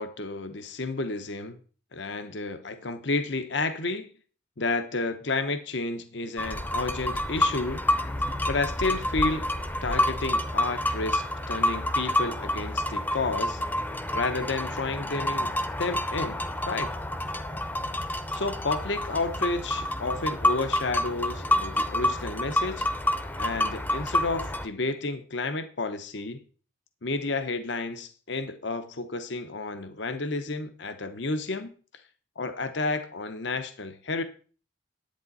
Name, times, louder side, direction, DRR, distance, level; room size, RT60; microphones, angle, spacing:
voice 1, 0.0-1.6 1.9-4.1 4.6-7.8 8.5-9.5 9.8-13.6 14.1-15.5 15.8-16.9 18.0-18.1 18.3-22.9 23.4-26.4 27.0-31.7 32.4-34.2, left 3 dB, 65° left, 10 dB, 0.9 m, -31 dB
sound 1, 6.4-24.7, left 1 dB, 10° left, 0.7 m, -28 dB
10.5 x 8.8 x 4.1 m, 0.40 s
head